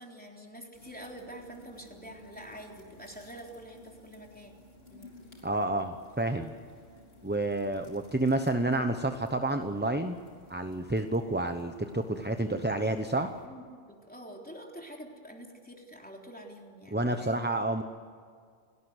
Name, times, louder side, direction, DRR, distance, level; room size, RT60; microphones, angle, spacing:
voice 1, 0.0-4.5 4.9-5.1 6.3-6.5 12.4-13.0 13.4-17.4, equal, 5° left, 0 dB, 3.7 m, -47 dB
sound 1, 0.7-13.5, left 2 dB, 45° left, 4.0 m, -55 dB
voice 2, 5.4-6.5 7.2-10.2 10.5-13.3 16.9-17.8, right 2 dB, 10° right, 6 dB, 0.8 m, -29 dB
30.0 x 18.0 x 8.1 m, 2.1 s
omnidirectional pair, 1.4 m